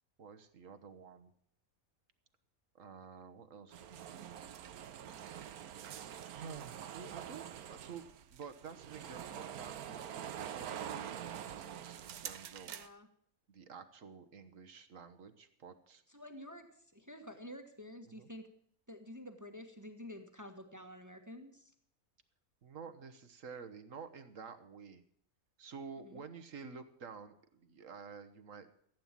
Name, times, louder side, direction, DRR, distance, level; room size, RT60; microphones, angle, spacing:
voice 1, 0.2-1.3 2.7-4.4 6.3-12.9 13.5-16.0 18.0-18.3 22.6-25.0 25.6-28.7, right 6 dB, 65° right, 9 dB, 1.5 m, -50 dB
sound 1, 3.7-12.9, right 9 dB, 85° right, 1.3 m, -46 dB
voice 2, 12.7-13.1 16.1-16.7 16.9-18.5 18.9-21.7 26.0-26.2, left 1 dB, 15° right, 6 dB, 1.3 m, -50 dB
15.5 x 9.0 x 7.4 m, 0.66 s
omnidirectional pair, 1.5 m